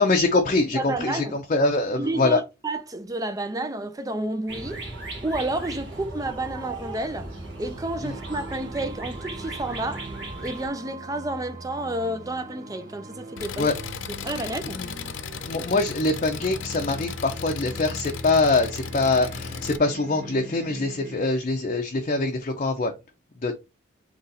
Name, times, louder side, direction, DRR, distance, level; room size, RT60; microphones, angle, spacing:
voice 1, 0.0-2.4 8.0-8.1 13.6-13.8 14.4-14.9 15.4-22.9 23.4-23.5, left 3 dB, 40° left, 0.6 m, -24 dB
voice 2, 0.7-1.4 2.0-4.9 5.2-7.3 7.6-10.1 10.4-13.7 14.2-14.8, right 2 dB, 20° right, 0.4 m, -30 dB
sound 1, 4.5-10.7, right 2 dB, 65° right, 1.5 m, -37 dB
sound 2, 7.1-21.3, right 3 dB, 45° right, 0.9 m, -42 dB
Engine, 13.4-19.8, left 6 dB, 85° left, 0.5 m, -35 dB
4.1 x 3.0 x 3.9 m
head